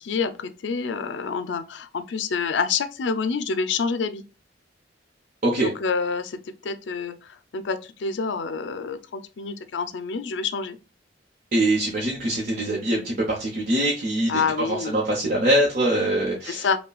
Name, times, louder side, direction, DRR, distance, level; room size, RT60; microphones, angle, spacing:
voice 1, 0.0-4.2 5.6-10.8 14.3-15.0 16.5-16.8, left 5 dB, 70° left, 0.4 m, -27 dB
voice 2, 11.5-14.4 14.8-16.7, right 1 dB, 50° right, 0.8 m, -23 dB
5.5 x 2.2 x 2.3 m
head